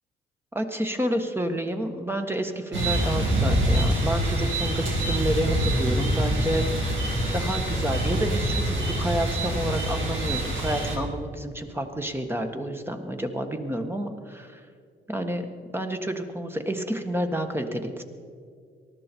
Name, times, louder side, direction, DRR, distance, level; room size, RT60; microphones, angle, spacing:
voice 1, 0.5-7.1 7.3-14.6 15.1-15.5 15.7-18.0, right 1 dB, 10° right, 5 dB, 1.5 m, -29 dB
sound 1, 2.7-11.0, right 1 dB, 75° right, 3.6 m, -25 dB
19.0 x 13.0 x 4.6 m, 2.2 s
cardioid pair, 90°, 20 cm